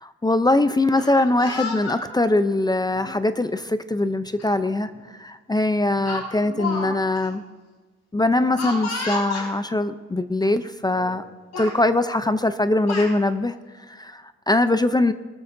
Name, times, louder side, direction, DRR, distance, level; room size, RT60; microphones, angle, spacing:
voice 1, 0.0-4.9 5.2-7.4 8.1-11.2 11.6-13.5 13.9-15.1, left 2 dB, 15° left, 11 dB, 0.6 m, -22 dB
Speech, 0.8-2.0 2.9-3.1 4.4-4.5 4.9-5.1 6.1-6.9 7.2-7.3 8.6-9.5 10.4-10.5 10.9-11.2 11.5-11.8 12.5-13.1, left 3 dB, 60° left, 5.1 m, -31 dB
23.5 x 13.5 x 2.7 m, 1.3 s
cardioid pair, 90°, 30 cm